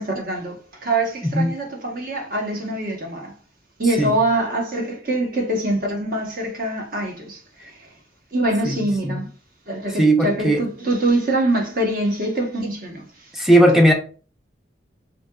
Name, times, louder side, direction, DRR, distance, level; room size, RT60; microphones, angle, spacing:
voice 1, 0.0-3.3 3.8-7.9 8.3-9.3 9.7-13.1, right 1 dB, 50° right, 0.9 m, -24 dB
voice 2, 1.2-1.6 4.0-4.2 8.6-9.2 10.0-10.6 13.3-13.9, right 1 dB, ahead, 0.4 m, -17 dB
4.2 x 2.7 x 2.3 m
head